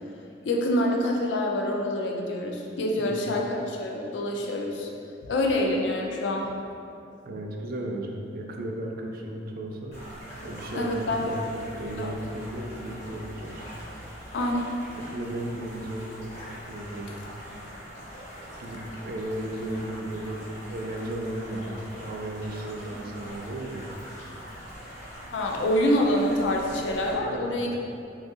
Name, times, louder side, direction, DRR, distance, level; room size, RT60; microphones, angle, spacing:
voice 1, 0.4-4.9 5.3-6.5 10.7-11.3 12.0-12.1 14.3-14.7 25.3-27.8, left 1 dB, 70° left, 0 dB, 0.4 m, -26 dB
voice 2, 7.2-9.9 10.4-13.6 15.0-16.3 16.7-17.1 18.6-23.9 27.2-27.6, right 1 dB, 55° right, 1 dB, 0.4 m, -35 dB
sound 1, 9.9-27.1, equal, 40° left, 1.1 m, -43 dB
2.7 x 2.7 x 3.6 m, 2.6 s
head